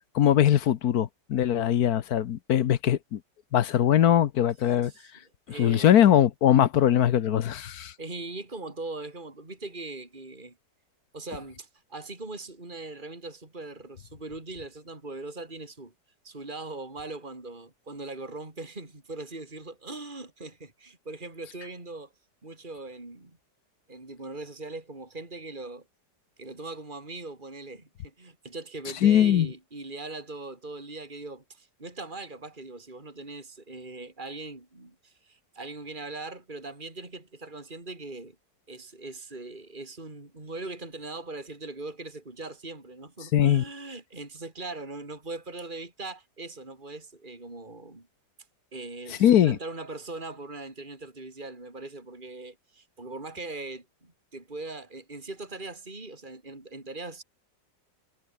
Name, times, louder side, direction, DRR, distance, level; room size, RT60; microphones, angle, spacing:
voice 1, 0.1-3.2 3.5-4.9 5.6-7.9 29.0-29.5 43.3-43.6 49.2-49.6, left 10 dB, 65° left, 1.3 m, -21 dB
voice 2, 4.8-5.1 5.5-5.9 8.0-10.6 11.1-15.9 16.2-22.1 22.4-23.4 23.9-25.8 26.4-38.4 38.7-48.1 48.7-57.2, right 2 dB, 25° right, 4.3 m, -40 dB
omnidirectional pair, 1.9 m